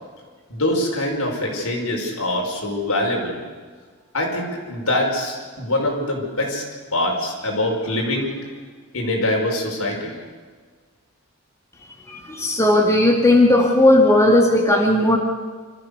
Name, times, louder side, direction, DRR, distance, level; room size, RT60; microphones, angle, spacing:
voice 1, 0.5-3.4 4.1-6.6 6.9-8.4 8.9-10.1, left 1 dB, 75° left, -1 dB, 5.2 m, -24 dB
voice 2, 12.1-15.2, left 1 dB, 15° left, 0 dB, 2.0 m, -16 dB
26.5 x 14.5 x 6.7 m, 1.5 s
head